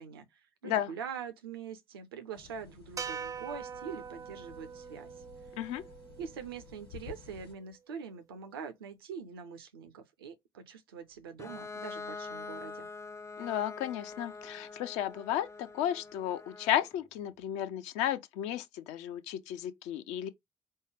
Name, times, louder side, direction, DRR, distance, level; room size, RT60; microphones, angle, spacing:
voice 1, 0.0-5.1 6.2-12.9, right 7 dB, 80° right, 0.6 m, -44 dB
sound 1, 2.3-7.5, left 8 dB, 85° left, 1.2 m, -53 dB
sound 2, 3.0-7.3, right 7 dB, 25° right, 0.4 m, -44 dB
Bowed string instrument, 11.4-17.0, left 4 dB, 25° left, 0.6 m, -44 dB
voice 2, 13.4-20.3, left 11 dB, 65° left, 0.6 m, -33 dB
5.3 x 2.2 x 3.2 m
figure-of-eight pair, 45°, 12 cm